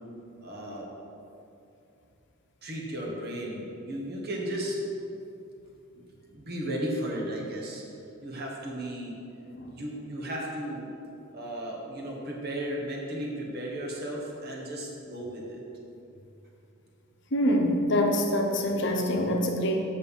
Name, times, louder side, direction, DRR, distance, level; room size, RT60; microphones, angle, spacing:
voice 1, 0.4-0.9 2.6-4.8 5.9-7.8 8.2-9.2 9.7-10.9 11.3-15.6, right 1 dB, 45° right, -2 dB, 1.5 m, -35 dB
voice 2, 17.3-19.8, equal, 55° left, 2 dB, 0.9 m, -25 dB
8.0 x 6.7 x 5.5 m, 2.7 s
head